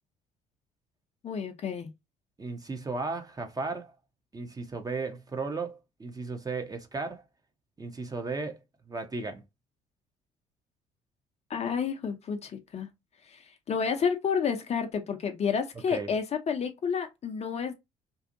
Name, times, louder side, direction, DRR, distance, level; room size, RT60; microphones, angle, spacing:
voice 1, 1.2-1.9 11.5-12.9 13.3-13.4 13.7-17.7, left 6 dB, 40° left, 0.6 m, -30 dB
voice 2, 2.4-3.9 4.3-7.2 7.8-8.6 8.9-9.4 15.9-16.1, right 3 dB, 20° right, 0.7 m, -35 dB
2.6 x 2.4 x 2.5 m
hypercardioid pair, 55°, 17 cm